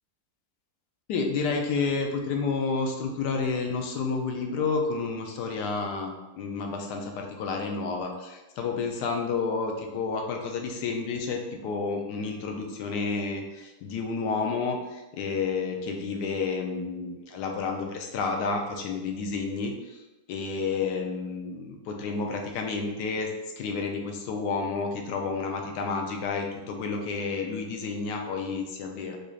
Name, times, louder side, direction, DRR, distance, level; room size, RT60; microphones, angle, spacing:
voice 1, 1.1-19.7 20.3-23.3 23.6-29.2, left 4 dB, 90° left, 3 dB, 1.2 m, -30 dB
3.9 x 3.2 x 2.3 m, 1.1 s
omnidirectional pair, 1.7 m